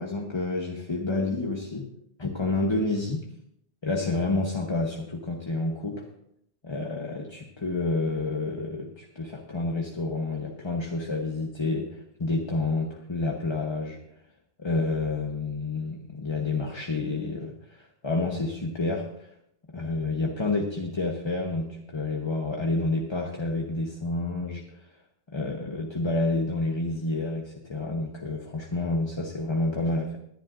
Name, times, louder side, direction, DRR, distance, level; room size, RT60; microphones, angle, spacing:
voice 1, 0.0-1.9 2.2-3.2 3.8-6.1 6.6-14.0 14.6-19.3 19.7-24.6 25.3-30.2, left 2 dB, 25° left, 1 dB, 1.1 m, -29 dB
20.5 x 10.5 x 2.6 m, 0.75 s
omnidirectional pair, 1.1 m